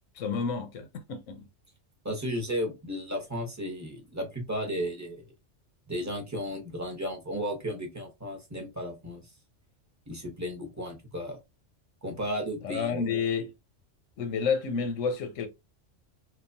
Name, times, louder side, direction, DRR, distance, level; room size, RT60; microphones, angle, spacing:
voice 1, 0.1-1.5 12.6-13.5 14.2-15.5, left 5 dB, 85° left, 1.0 m, -30 dB
voice 2, 2.0-5.3 5.9-9.2 10.1-11.4 12.0-13.1, equal, 15° right, 0.7 m, -34 dB
2.9 x 2.2 x 2.5 m
omnidirectional pair, 1.3 m